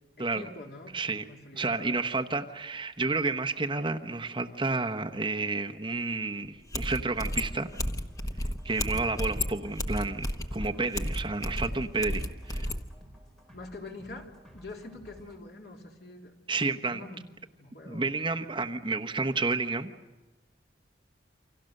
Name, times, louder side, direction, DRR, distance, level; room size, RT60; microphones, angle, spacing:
voice 1, 0.2-1.0 1.3-2.1 13.5-16.3 16.8-17.2 17.5-18.1, left 2 dB, 60° left, 1 dB, 3.6 m, -45 dB
voice 2, 0.9-1.2 1.5-7.7 8.6-12.7 16.5-17.0 17.8-19.9, right 3 dB, 25° right, 5 dB, 1.0 m, -30 dB
sound 1, 6.4-6.5 6.7-12.8, left 1 dB, 20° left, 1.1 m, -33 dB
sound 2, 7.2-15.4, equal, ahead, 4.5 m, -53 dB
29.0 x 25.5 x 6.6 m, 1.1 s
head